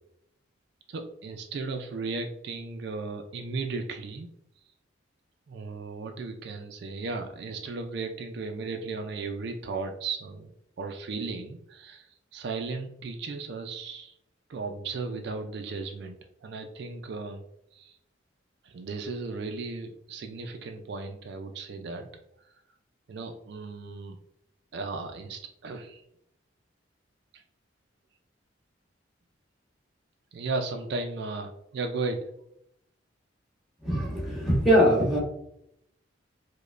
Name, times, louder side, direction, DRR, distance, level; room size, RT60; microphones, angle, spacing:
voice 1, 0.9-4.3 5.5-14.2 14.5-17.4 17.7-18.0 18.6-22.1 23.1-24.2 24.7-26.0 27.3-27.4 30.3-32.3, right 3 dB, 55° right, 5 dB, 0.3 m, -35 dB
voice 2, 33.8-35.2, equal, ahead, -6 dB, 1.0 m, -22 dB
5.0 x 2.1 x 2.4 m, 0.76 s
head